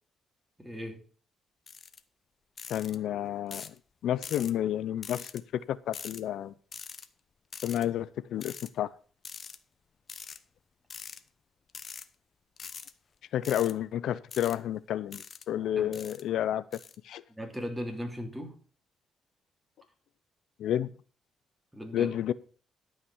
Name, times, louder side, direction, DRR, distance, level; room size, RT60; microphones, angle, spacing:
voice 1, 0.6-1.0 15.7-16.0 17.3-18.5 21.7-22.1, equal, 10° right, 2.9 m, -38 dB
sound 1, 1.7-2.0 2.6-3.0 3.5-3.8 4.2-4.5 5.0-5.4 5.9-6.2 6.7-7.1 7.5-7.9 8.4-8.7 9.2-9.6 10.1-10.4 10.9-11.2 11.7-12.1 12.6-12.9 13.4-13.7 14.3-14.6 15.1-15.5 15.9-16.2 16.7-17.0, left 6 dB, 45° left, 1.0 m, -43 dB
voice 2, 2.7-3.7 4.0-6.5 7.6-8.9 13.3-16.6 17.0-17.2 20.6-20.9 21.9-22.3, left 11 dB, 80° left, 0.5 m, -30 dB
13.0 x 5.8 x 7.1 m
cardioid pair, 90°, 0 cm